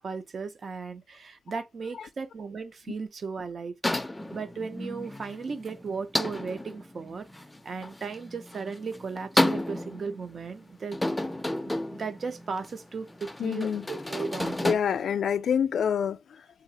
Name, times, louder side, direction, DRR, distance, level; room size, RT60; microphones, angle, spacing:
voice 1, 0.0-3.8 4.3-7.3 7.6-11.0 11.6-14.8, right 5 dB, 55° right, 0.5 m, -36 dB
sound 1, 3.8-14.8, left 1 dB, 10° left, 0.4 m, -32 dB
voice 2, 13.4-13.9 14.6-16.6, left 8 dB, 80° left, 0.3 m, -27 dB
2.8 x 2.4 x 3.9 m
wide cardioid pair, 120°, 0 cm